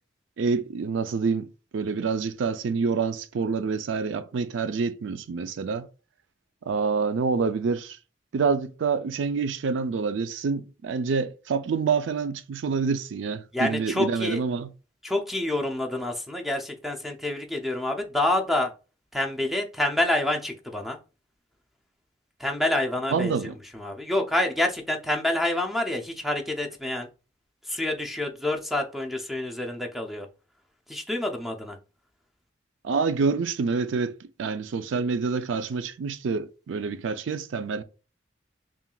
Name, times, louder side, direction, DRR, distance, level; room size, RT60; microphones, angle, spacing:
voice 1, 0.4-5.9 6.7-8.0 8.3-14.7 23.1-23.5 32.8-37.8, right 5 dB, 80° right, 0.4 m, -27 dB
voice 2, 13.5-14.4 15.0-18.7 19.1-21.0 22.4-23.4 23.7-27.1 27.6-30.3 30.9-31.8, left 1 dB, ahead, 0.5 m, -27 dB
5.7 x 2.4 x 2.3 m
head